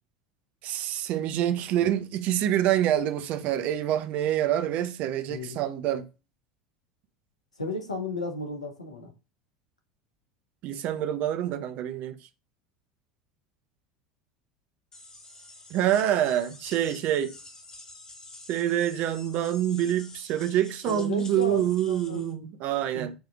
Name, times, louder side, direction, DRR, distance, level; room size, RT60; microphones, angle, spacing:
voice 1, 0.6-6.1 10.6-12.2 15.7-17.3 18.5-23.1, right 11 dB, 45° right, 0.7 m, -26 dB
voice 2, 7.6-9.1 20.9-22.5 22.9-23.1, left 2 dB, 85° left, 1.4 m, -34 dB
sound 1, 14.9-22.3, left 2 dB, 20° left, 1.9 m, -48 dB
7.9 x 3.3 x 3.6 m
figure-of-eight pair, 75°, 3 cm